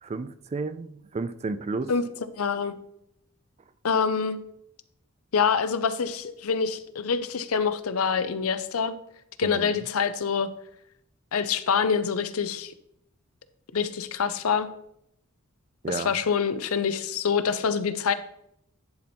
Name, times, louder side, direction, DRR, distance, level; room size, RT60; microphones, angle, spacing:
voice 1, 0.0-1.9 9.4-9.8 15.8-16.2, right 3 dB, 30° right, 0.4 m, -32 dB
voice 2, 2.3-2.7 3.8-4.4 5.3-8.9 9.4-10.5 11.3-12.7 13.7-14.7 15.9-18.1, left 6 dB, 75° left, 0.6 m, -26 dB
10.5 x 4.2 x 4.4 m
head